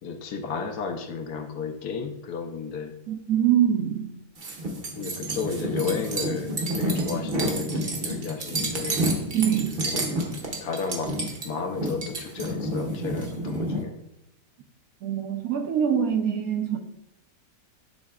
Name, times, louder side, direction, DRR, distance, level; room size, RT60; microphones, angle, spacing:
voice 1, 0.0-2.9 5.0-9.0 9.8-10.0 10.6-11.2 11.4-13.9, left 5 dB, 75° left, 4 dB, 1.3 m, -33 dB
voice 2, 3.1-4.1 9.3-9.8 15.0-16.8, right 9 dB, 65° right, 5 dB, 1.1 m, -24 dB
sound 1, 4.4-13.8, right 1 dB, 40° right, 1.0 m, -29 dB
10.5 x 3.8 x 2.4 m, 0.84 s
omnidirectional pair, 1.8 m